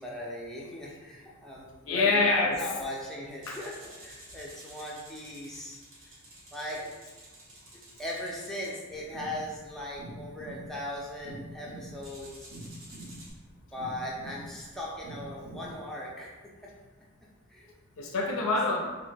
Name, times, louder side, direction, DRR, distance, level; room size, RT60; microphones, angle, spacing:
voice 1, 0.0-5.8 6.5-6.8 7.7-12.5 13.7-16.3 16.6-16.7 17.5-17.7, left 1 dB, ahead, -5 dB, 0.4 m, -38 dB
voice 2, 1.9-2.6 3.5-3.6 6.7-6.9 18.0-18.8, left 3 dB, 75° left, 0 dB, 0.4 m, -26 dB
sound 1, 3.4-8.7 12.0-13.3, right 1 dB, 85° right, 0.9 m, -51 dB
sound 2, 8.9-15.8, right 1 dB, 50° right, 0.7 m, -45 dB
3.1 x 2.1 x 3.3 m, 1.3 s
head